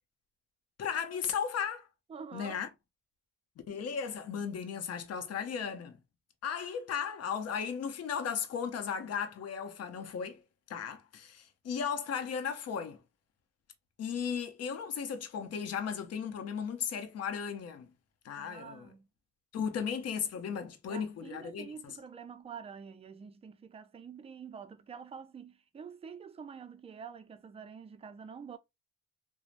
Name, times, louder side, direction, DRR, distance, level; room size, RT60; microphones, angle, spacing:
voice 1, 0.8-1.9 2.3-2.7 3.7-6.0 6.4-10.4 10.7-13.0 14.0-17.9 18.2-18.9 19.5-21.9, left 7 dB, 55° left, 0.7 m, -36 dB
voice 2, 2.1-2.6 18.3-19.1 20.9-28.6, right 6 dB, 20° right, 0.4 m, -47 dB
3.1 x 2.0 x 2.4 m
cardioid pair, 90°, 30 cm